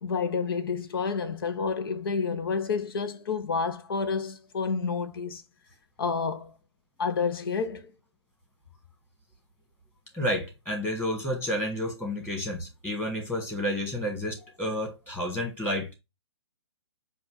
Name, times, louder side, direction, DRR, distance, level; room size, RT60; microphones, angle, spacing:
voice 1, 0.0-5.4 6.0-6.5 7.0-7.9, left 5 dB, 55° left, 1.0 m, -29 dB
voice 2, 10.1-15.9, left 1 dB, 10° left, 2.0 m, -30 dB
7.6 x 2.7 x 5.7 m
figure-of-eight pair, 125°, 14 cm